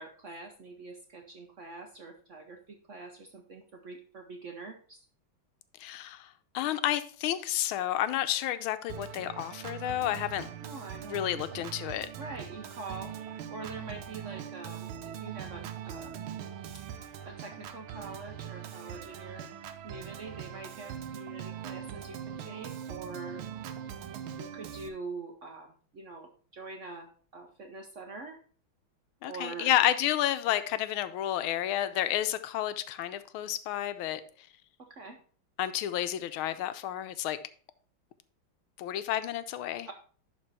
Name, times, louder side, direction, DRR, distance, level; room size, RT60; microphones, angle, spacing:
voice 1, 0.0-5.0 10.6-11.6 12.2-16.2 17.3-19.5 19.8-23.4 24.4-28.4 29.2-29.7 34.9-35.2 39.9-40.0, right 3 dB, 55° right, 0.8 m, -44 dB
voice 2, 5.8-6.3 6.5-10.5 11.1-12.1 29.2-34.2 35.6-37.4 38.8-39.9, left 12 dB, 90° left, 1.5 m, -30 dB
Organ, 8.9-24.9, right 9 dB, 80° right, 1.5 m, -41 dB
11.0 x 4.0 x 4.1 m
omnidirectional pair, 2.2 m